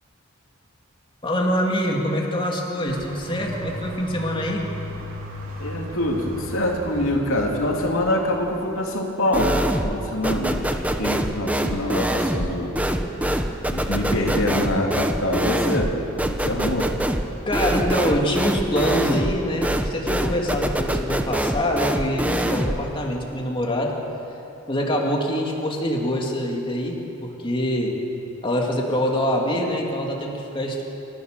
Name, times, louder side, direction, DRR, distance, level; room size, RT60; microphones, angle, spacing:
voice 1, 1.2-4.7 17.5-24.0 24.7-27.9 28.4-30.8, equal, 25° left, -1 dB, 2.7 m, -25 dB
sound 1, 2.9-8.8, equal, 85° right, 3.3 m, -36 dB
voice 2, 5.6-12.7 13.7-15.9 16.3-16.9, left 1 dB, 75° left, 0 dB, 3.0 m, -25 dB
sound 2, 9.3-10.0 10.2-22.8, right 1 dB, 5° right, 0.9 m, -24 dB
27.5 x 14.5 x 6.8 m, 3.0 s
head